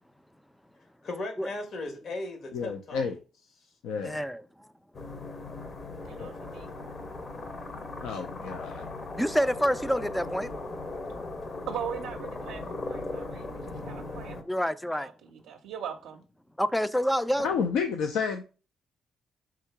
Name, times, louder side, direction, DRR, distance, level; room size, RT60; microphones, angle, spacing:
voice 1, 1.0-3.1, left 2 dB, 60° left, 1.2 m, -37 dB
voice 2, 2.5-3.2 3.8-4.2 6.2-6.3 8.0-8.9 17.4-18.4, left 6 dB, 90° left, 0.4 m, -30 dB
voice 3, 4.0-4.4 9.2-10.5 14.5-15.1 16.6-17.5, equal, 5° left, 0.3 m, -27 dB
sound 1, 4.9-14.4, left 2 dB, 40° left, 0.8 m, -38 dB
voice 4, 6.0-6.7 11.7-14.4 15.0-16.2, right 8 dB, 90° right, 0.4 m, -40 dB
3.7 x 2.8 x 4.5 m
cardioid pair, 90°, 0 cm